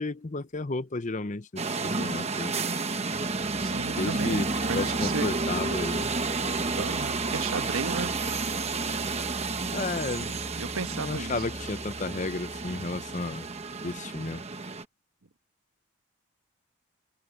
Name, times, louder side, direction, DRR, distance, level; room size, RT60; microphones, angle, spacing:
voice 1, 0.0-2.6 4.0-6.1 9.7-10.4 11.0-13.5 13.8-14.4, left 3 dB, 35° left, 0.7 m, -33 dB
sound 1, 1.6-14.8, right 3 dB, 30° right, 1.1 m, -31 dB
sound 2, 3.0-14.0, equal, 5° left, 1.8 m, -44 dB
voice 2, 3.6-5.2 6.8-8.1 10.6-11.3, right 4 dB, 80° right, 1.2 m, -34 dB
head